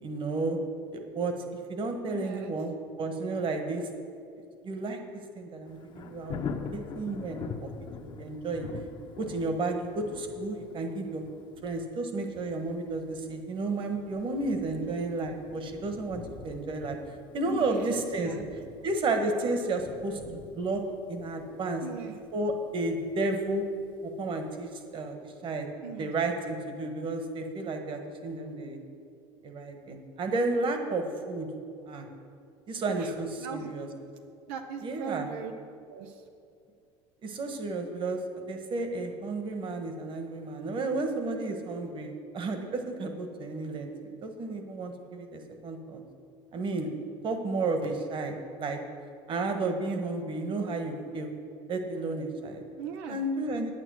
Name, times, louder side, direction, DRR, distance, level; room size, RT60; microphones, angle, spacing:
voice 1, 0.0-0.6 0.9-1.3 1.7-3.8 4.6-5.0 5.3-6.4 6.7-7.7 8.0-8.7 9.2-11.2 11.6-17.0 17.3-20.8 21.1-21.8 22.3-23.7 24.0-25.7 26.0-28.8 29.4-31.5 31.9-32.1 32.7-33.9 34.8-35.3 37.2-38.2 38.5-46.0 46.5-46.9 47.2-48.8 49.3-51.3 51.7-52.6 53.1-53.7, right 2 dB, 40° right, 5 dB, 1.4 m, -32 dB
voice 2, 2.1-2.5 14.7-14.9 17.5-18.4 21.8-22.2 25.8-26.1 32.9-33.1 33.4-33.7 34.5-35.5 35.9-36.2 52.8-53.2, right 7 dB, 85° right, 6 dB, 0.7 m, -40 dB
Thunder, 5.6-24.4 24.9-25.0, left 5 dB, 40° left, 0.9 m, -45 dB
9.0 x 9.0 x 6.3 m, 2.4 s
supercardioid pair, 115°, 13 cm